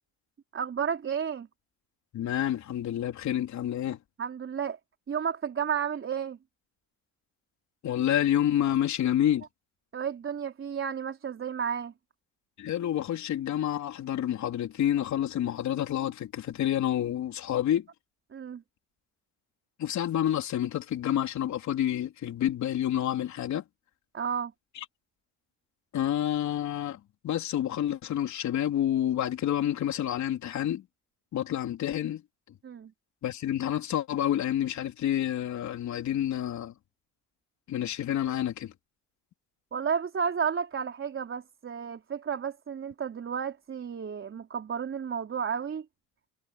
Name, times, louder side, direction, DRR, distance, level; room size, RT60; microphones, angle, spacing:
voice 1, 0.5-1.5 4.2-4.8 5.1-6.4 9.9-11.9 18.3-18.6 24.1-24.5 32.6-32.9 39.7-45.9, right 7 dB, 40° right, 3.9 m, -32 dB
voice 2, 2.1-4.0 7.8-9.5 12.6-17.9 19.8-23.6 25.9-30.8 31.3-32.2 33.2-36.7 37.7-38.7, left 11 dB, 65° left, 3.6 m, -28 dB
cardioid pair, 90°, 31 cm